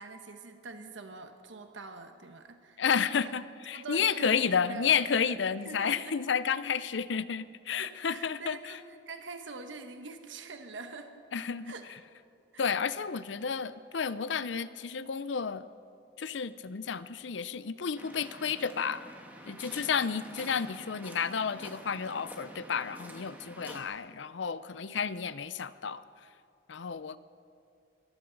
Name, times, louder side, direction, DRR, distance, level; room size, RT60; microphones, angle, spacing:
voice 1, 0.0-3.3 3.7-5.0 5.6-6.2 7.8-11.1 11.6-11.8 12.5-12.7, right 3 dB, 80° right, 6 dB, 1.1 m, -44 dB
voice 2, 2.8-8.8 11.3-11.7 12.6-15.6 16.2-19.0 19.5-26.0 26.7-27.2, left 6 dB, 75° left, 15 dB, 0.6 m, -31 dB
Waves surf, 18.0-23.8, right 1 dB, 10° right, 1.4 m, -48 dB
22.5 x 14.5 x 4.0 m, 2.5 s
head